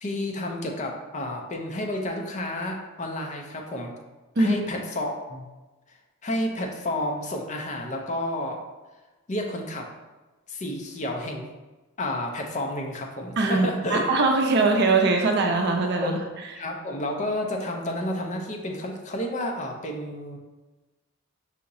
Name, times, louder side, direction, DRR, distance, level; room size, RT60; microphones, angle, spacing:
voice 1, 0.0-3.9 4.4-5.5 6.2-8.6 9.3-9.9 10.5-11.5 12.0-14.1 16.0-16.1 16.5-20.4, left 1 dB, 35° left, 2 dB, 0.6 m, -30 dB
voice 2, 13.4-16.2, right 3 dB, 55° right, 2 dB, 0.5 m, -22 dB
5.7 x 2.9 x 2.6 m, 1.2 s
head